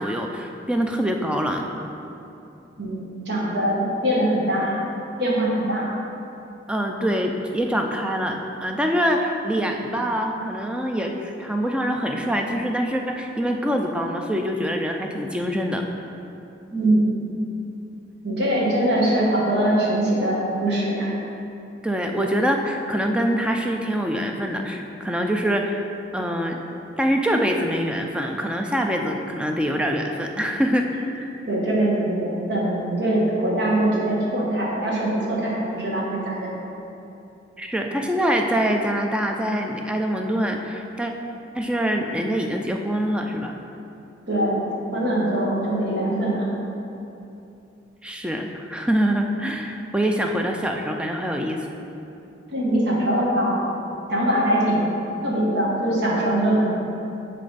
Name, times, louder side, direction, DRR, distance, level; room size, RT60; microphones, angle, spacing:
voice 1, 0.0-1.7 6.7-15.8 21.8-25.8 26.1-26.6 27.0-30.9 37.6-41.1 41.5-43.6 48.0-51.7, equal, 5° right, 2 dB, 0.4 m, -24 dB
voice 2, 2.8-4.7 5.2-5.9 16.7-17.3 18.2-21.1 31.5-36.6 44.3-46.5 52.5-53.6 54.1-54.9 55.2-56.7, right 1 dB, 65° right, -5 dB, 1.3 m, -22 dB
9.8 x 3.3 x 4.0 m, 2.8 s
head